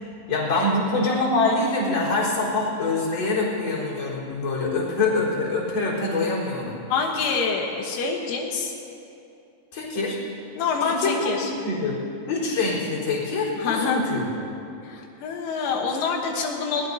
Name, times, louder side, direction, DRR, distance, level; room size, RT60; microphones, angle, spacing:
voice 1, 0.3-6.8 9.7-10.2 10.8-11.4 11.6-12.0 12.3-14.4, left 2 dB, 25° left, -5 dB, 4.4 m, -24 dB
voice 2, 6.9-8.7 10.6-11.5 13.6-14.0 14.8-16.9, left 5 dB, 80° left, 0 dB, 3.6 m, -26 dB
21.0 x 19.0 x 2.8 m, 2.7 s
omnidirectional pair, 5.5 m